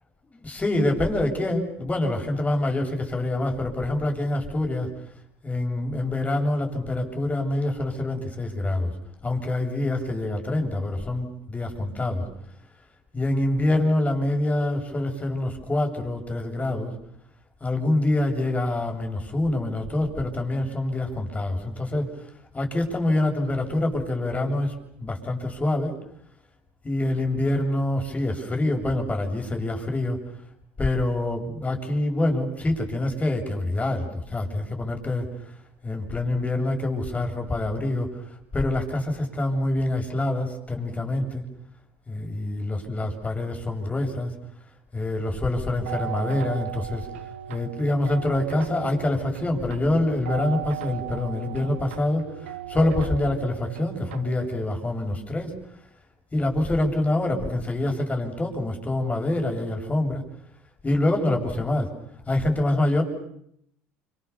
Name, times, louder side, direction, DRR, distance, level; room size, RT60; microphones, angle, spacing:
voice 1, 0.3-4.9 5.4-8.9 9.2-12.2 13.1-16.9 17.6-25.9 26.8-30.2 30.8-35.6 35.8-41.4 42.1-44.3 44.9-47.1 47.5-55.6 56.3-60.2 60.8-61.9 62.3-63.0, left 1 dB, 20° left, 3 dB, 7.6 m, -26 dB
sound 1, 45.9-54.7, right 12 dB, 90° right, 1.0 m, -37 dB
29.5 x 26.5 x 7.2 m, 0.73 s
hypercardioid pair, 75°, 6 cm